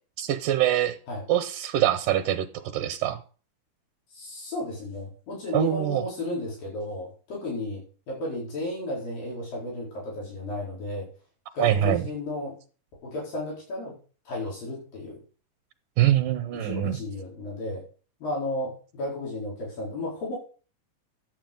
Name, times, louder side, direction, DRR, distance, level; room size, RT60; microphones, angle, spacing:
voice 1, 0.2-1.0 1.3-2.5 2.7-3.2 5.5-6.0 11.6-12.0 16.0-17.0, right 12 dB, 80° right, 2.3 m, -24 dB
voice 2, 4.1-7.8 8.1-11.1 11.5-12.6 13.0-13.9 14.3-15.2 16.6-17.8 18.2-20.4, left 2 dB, 90° left, 6.4 m, -33 dB
12.0 x 8.2 x 5.3 m
omnidirectional pair, 3.9 m